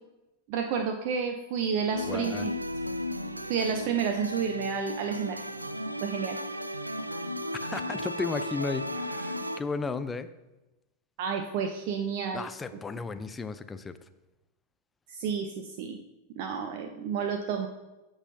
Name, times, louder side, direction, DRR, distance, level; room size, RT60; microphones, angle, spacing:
voice 1, 0.5-2.5 3.5-5.4 6.0-6.4 11.2-12.5 15.1-16.0 16.4-17.7, right 6 dB, 50° right, 5 dB, 0.7 m, -30 dB
sound 1, 1.9-9.6, left 1 dB, 90° right, 0.4 m, -35 dB
voice 2, 2.1-2.5 7.6-10.3 12.3-14.0, left 4 dB, 15° left, 11 dB, 0.5 m, -34 dB
14.0 x 5.5 x 2.8 m, 1.0 s
figure-of-eight pair, 90°, 0 cm